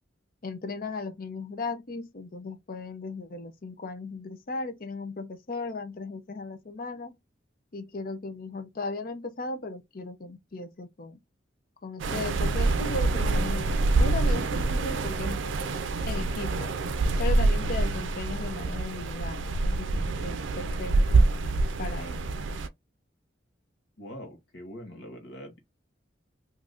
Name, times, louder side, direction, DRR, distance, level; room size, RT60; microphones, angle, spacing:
voice 1, 0.4-7.2 7.7-11.2 11.8-13.7 14.0-15.4 16.1-16.7 17.2-21.3 21.8-22.2, left 3 dB, 50° left, 0.6 m, -36 dB
sound 1, 12.0-22.7, right 3 dB, 85° right, 0.4 m, -26 dB
voice 2, 24.0-25.6, equal, 75° left, 1.1 m, -43 dB
2.6 x 2.5 x 3.4 m
head